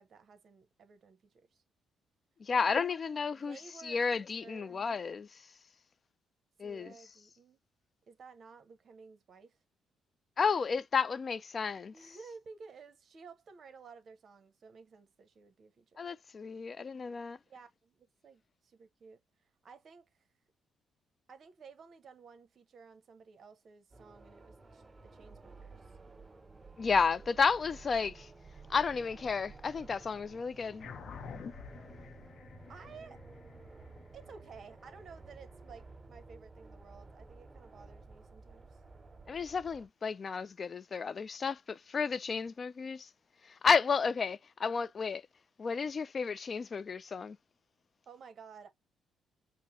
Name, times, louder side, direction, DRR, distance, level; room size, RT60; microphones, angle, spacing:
voice 1, 0.0-1.6 2.5-3.0 3.3-4.8 6.6-7.6 8.1-9.6 11.9-16.0 17.5-20.3 21.3-25.9 32.7-33.2 34.1-38.8 48.1-48.7, right 5 dB, 50° right, 1.0 m, -54 dB
voice 2, 2.4-3.6 3.8-5.4 6.6-6.9 10.4-11.9 16.0-17.4 26.8-28.3 28.7-30.9 39.3-43.1 43.4-45.2 45.6-47.4, left 5 dB, 40° left, 0.3 m, -32 dB
sound 1, 23.9-39.9, right 3 dB, 20° right, 2.1 m, -53 dB
sound 2, 30.8-35.6, left 6 dB, 60° left, 0.7 m, -49 dB
5.4 x 2.1 x 2.7 m
cardioid pair, 90°, 0 cm